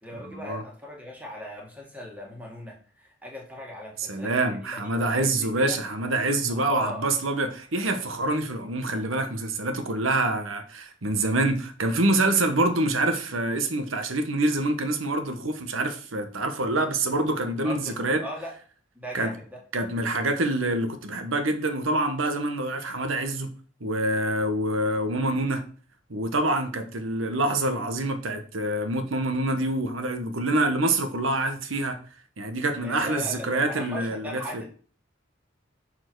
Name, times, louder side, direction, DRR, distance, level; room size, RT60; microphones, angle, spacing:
voice 1, 0.0-4.8 5.1-5.8 6.5-7.0 17.6-18.5 19.0-19.6 32.8-34.7, left 1 dB, 5° right, 1.9 m, -38 dB
voice 2, 4.1-18.2 19.1-19.3 19.7-23.5 23.8-25.6 26.1-32.0 32.4-34.6, right 2 dB, 75° right, 1.1 m, -26 dB
6.6 x 4.4 x 4.6 m
head